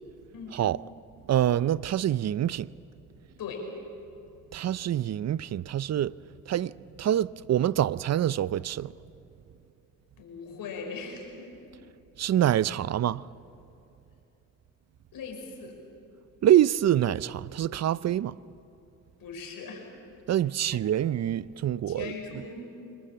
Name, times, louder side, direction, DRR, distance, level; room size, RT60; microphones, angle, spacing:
voice 1, 1.3-2.7 4.5-6.1 6.5-8.9 12.2-13.3 16.4-18.3 20.3-22.4, right 11 dB, 50° right, 0.5 m, -26 dB
voice 2, 10.2-11.5 15.1-15.7 19.2-19.9 21.9-22.7, left 4 dB, 75° left, 5.7 m, -39 dB
26.0 x 21.0 x 7.5 m
cardioid pair, 75°, 35 cm